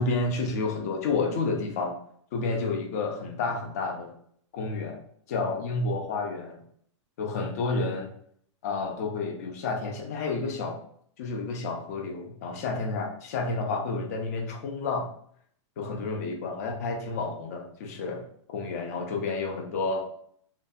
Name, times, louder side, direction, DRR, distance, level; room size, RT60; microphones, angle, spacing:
voice 1, 0.0-2.0 2.3-4.1 4.5-5.0 5.3-6.6 7.2-8.1 8.6-10.8 11.2-15.1 15.8-18.2 18.5-20.0, left 3 dB, 30° left, 3 dB, 0.4 m, -30 dB
2.7 x 2.6 x 2.2 m, 0.64 s
hypercardioid pair, 175°, 16 cm